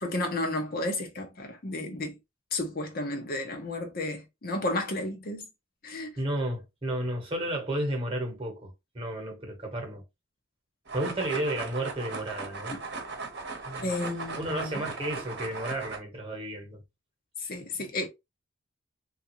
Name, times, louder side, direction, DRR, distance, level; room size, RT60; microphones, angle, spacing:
voice 1, 0.0-2.2 2.5-5.5 5.8-6.1 13.8-14.9 17.4-18.1, left 2 dB, 45° left, 0.6 m, -32 dB
voice 2, 6.2-10.0 10.9-12.8 13.7-13.9 14.4-16.8 17.6-17.7, right 1 dB, 25° right, 1.0 m, -32 dB
sound 1, 10.9-16.0, right 4 dB, 50° right, 0.9 m, -38 dB
3.5 x 2.4 x 2.9 m
head